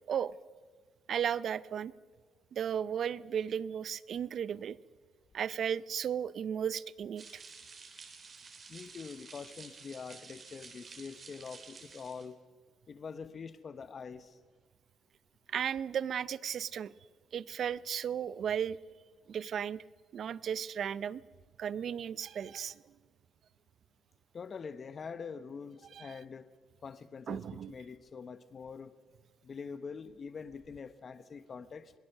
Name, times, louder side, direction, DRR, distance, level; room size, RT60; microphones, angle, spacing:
voice 1, 1.1-1.9 2.5-4.8 5.3-7.4 15.5-16.9 17.3-18.8 19.3-19.8 20.1-21.2 21.6-22.8 25.9-26.1 27.3-27.7, right 8 dB, 60° right, 0.6 m, -35 dB
sound 1, 7.2-12.3, right 5 dB, 45° right, 3.3 m, -51 dB
voice 2, 8.7-12.4 12.9-14.4 24.3-26.5 26.8-28.9 29.4-31.9, left 5 dB, 45° left, 0.9 m, -45 dB
23.0 x 18.0 x 6.6 m
cardioid pair, 90°, 0 cm